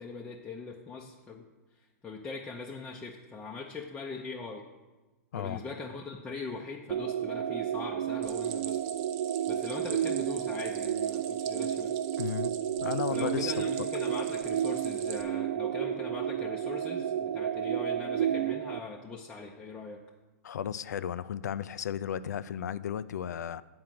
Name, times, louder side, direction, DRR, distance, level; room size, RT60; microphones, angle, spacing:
voice 1, 0.0-1.4 1.8-4.7 5.3-8.8 9.5-12.0 13.1-20.0, left 4 dB, 10° left, -2 dB, 0.6 m, -41 dB
sound 1, 6.9-18.8, right 9 dB, 70° right, 0.4 m, -31 dB
Stream, 8.2-15.2, right 9 dB, 35° right, 0.7 m, -45 dB
voice 2, 12.2-12.6 12.8-13.7 20.4-23.6, left 9 dB, 85° left, 15 dB, 0.4 m, -34 dB
8.9 x 4.8 x 7.5 m, 1.2 s
hypercardioid pair, 140°, 9 cm